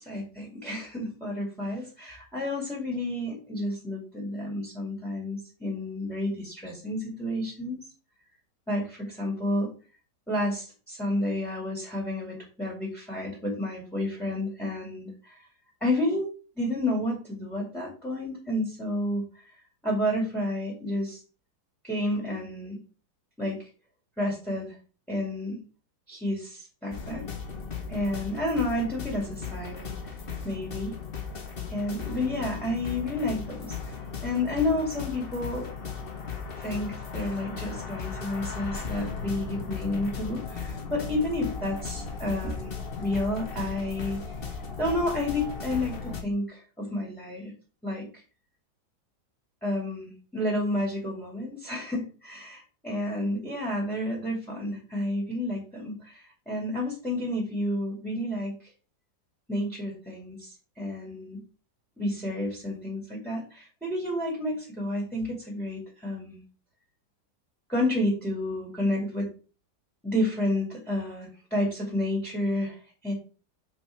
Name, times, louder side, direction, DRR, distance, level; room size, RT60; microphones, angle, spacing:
voice 1, 0.0-7.8 8.7-9.7 10.3-15.5 15.8-21.2 21.8-22.8 23.4-23.7 24.2-24.8 25.1-25.6 26.1-27.4 27.9-30.1 30.4-31.0 31.7-35.7 36.5-42.7 43.0-44.4 44.8-47.5 47.8-48.2 49.6-58.7 59.5-61.4 62.0-66.4 67.7-69.3 70.0-73.1, left 1 dB, ahead, -2 dB, 2.6 m, -30 dB
sound 1, 26.9-46.2, left 5 dB, 40° left, 1.4 m, -36 dB
6.3 x 5.1 x 5.9 m, 0.35 s
omnidirectional pair, 1.7 m